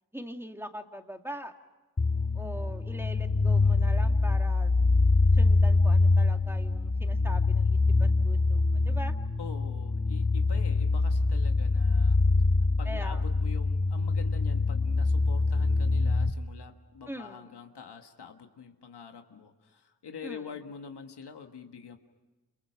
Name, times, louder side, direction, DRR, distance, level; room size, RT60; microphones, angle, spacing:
voice 1, 0.1-1.5 2.3-4.7 5.3-9.1 12.8-13.2 17.1-17.5 20.2-20.5, equal, 5° right, 5 dB, 2.2 m, -42 dB
sound 1, 2.0-16.3, left 3 dB, 20° left, 0.9 m, -24 dB
voice 2, 9.4-12.2 12.8-22.0, left 6 dB, 85° left, 5 dB, 1.8 m, -45 dB
29.5 x 28.0 x 5.9 m, 1.2 s
cardioid pair, 50°, 39 cm